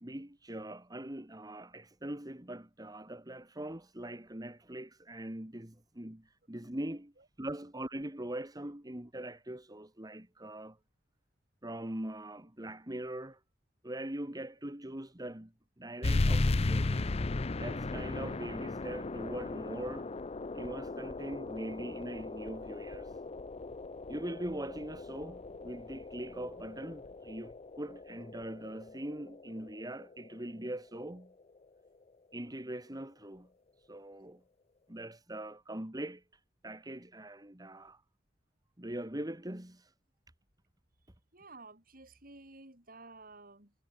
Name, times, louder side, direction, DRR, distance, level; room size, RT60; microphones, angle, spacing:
voice 1, 0.0-7.1 7.4-10.8 11.6-13.4 13.8-17.1 17.5-20.1 20.5-23.2 24.1-31.3 32.3-33.5 33.8-34.4 34.9-36.2 36.6-38.0 38.8-39.9, right 1 dB, 20° right, 2.2 m, -42 dB
sound 1, 16.0-31.1, left 2 dB, 35° left, 0.6 m, -36 dB
voice 2, 41.3-43.7, right 3 dB, 50° right, 7.2 m, -53 dB
head